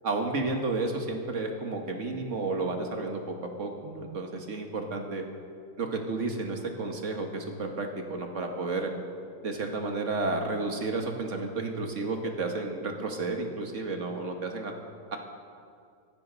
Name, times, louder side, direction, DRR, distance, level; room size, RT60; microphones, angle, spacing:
voice 1, 0.0-5.2 5.8-8.9 9.4-14.7, right 3 dB, 50° right, 3 dB, 1.7 m, -32 dB
25.0 x 9.6 x 4.0 m, 2.3 s
omnidirectional pair, 1.8 m